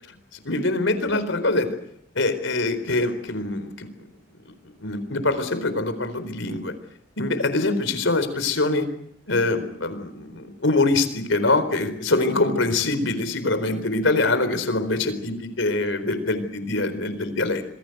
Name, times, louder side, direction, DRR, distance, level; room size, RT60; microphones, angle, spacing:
voice 1, 0.5-1.7 2.2-3.9 4.8-6.7 7.2-8.9 9.3-17.6, left 2 dB, 75° left, 11 dB, 4.2 m, -24 dB
27.5 x 20.5 x 7.9 m, 0.70 s
head